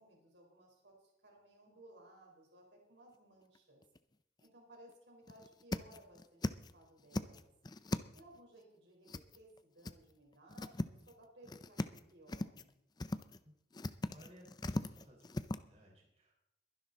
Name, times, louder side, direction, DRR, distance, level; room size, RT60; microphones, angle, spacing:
voice 1, 0.0-3.8 4.4-6.4 6.7-7.5 8.1-12.8, right 1 dB, 85° right, 0 dB, 4.3 m, -60 dB
sound 1, 3.6-4.0 4.4-4.5 4.9-5.0 5.3-6.7 7.0-8.4 9.1-9.6 9.8-9.9 10.3-11.1 11.4-12.0 12.3-12.7 13.0-13.4 13.7-15.6, left 2 dB, 25° left, 0.5 m, -39 dB
voice 2, 14.1-16.4, equal, 35° right, -2 dB, 4.8 m, -60 dB
22.5 x 10.5 x 4.0 m, 0.81 s
head